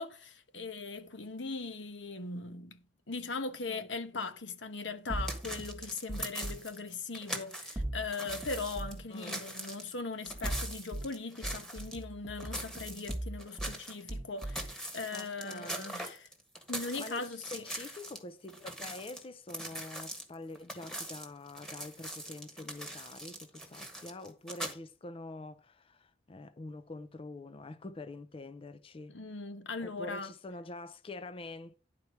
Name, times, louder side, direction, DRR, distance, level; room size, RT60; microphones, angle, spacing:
voice 1, 0.0-2.8 3.1-16.3 16.7-17.6 29.1-30.3, left 3 dB, 80° left, 1.1 m, -39 dB
sound 1, 5.1-6.6 7.8-9.1 10.3-11.1 11.4-13.8 14.1-14.7, right 1 dB, 15° right, 1.0 m, -39 dB
sound 2, 5.2-7.8 8.1-12.0 12.4-14.1 14.4-18.2 18.5-24.7, right 1 dB, 5° left, 1.5 m, -42 dB
voice 2, 9.1-9.4 15.1-16.0 17.0-29.1 29.8-31.8, left 2 dB, 30° left, 0.5 m, -46 dB
10.5 x 4.6 x 5.5 m
head